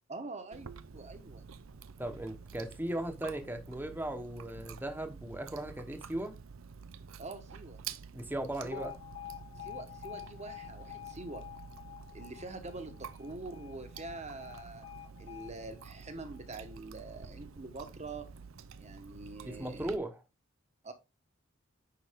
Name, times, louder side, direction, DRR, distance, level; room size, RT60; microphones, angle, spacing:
voice 1, 0.1-1.5 7.2-7.8 8.6-8.9 9.6-11.4 12.1-14.8 15.2-18.3 18.8-19.9 20.8-20.9, right 2 dB, 35° right, 1.2 m, -45 dB
Chewing mastication, 0.5-20.0, right 6 dB, 80° right, 0.6 m, -49 dB
voice 2, 2.0-6.3 8.1-8.9 19.4-20.2, right 1 dB, 10° right, 1.1 m, -37 dB
Alarm, 8.7-16.8, left 14 dB, 80° left, 2.4 m, -48 dB
9.8 x 4.2 x 3.6 m
head